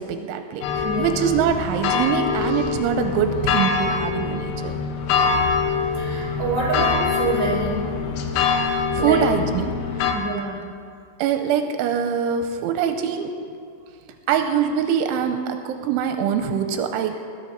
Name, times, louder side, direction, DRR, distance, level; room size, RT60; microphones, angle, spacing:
voice 1, 0.0-4.7 8.4-10.1 11.2-13.3 14.3-17.2, right 7 dB, 90° right, 7 dB, 3.1 m, -24 dB
sound 1, 0.6-10.1, left 5 dB, 90° left, 3.6 m, -24 dB
voice 2, 0.8-1.3 5.1-5.6 5.9-7.8 9.0-9.3 10.1-10.6, right 3 dB, 40° right, -5 dB, 5.2 m, -27 dB
20.5 x 9.6 x 5.2 m, 2.3 s
omnidirectional pair, 5.5 m